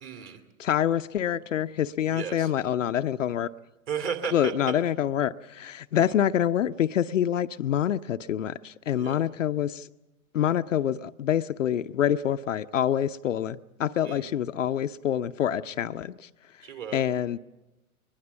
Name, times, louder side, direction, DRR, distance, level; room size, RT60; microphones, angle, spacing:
voice 1, 0.0-0.4 2.1-2.5 3.9-4.5 5.9-6.2 8.9-9.2 14.0-14.3 16.6-17.0, right 7 dB, 30° right, 2.5 m, -34 dB
voice 2, 0.6-3.5 4.3-9.9 10.3-16.3 16.9-17.4, left 10 dB, 60° left, 0.6 m, -26 dB
23.0 x 20.0 x 7.1 m
figure-of-eight pair, 115°, 44 cm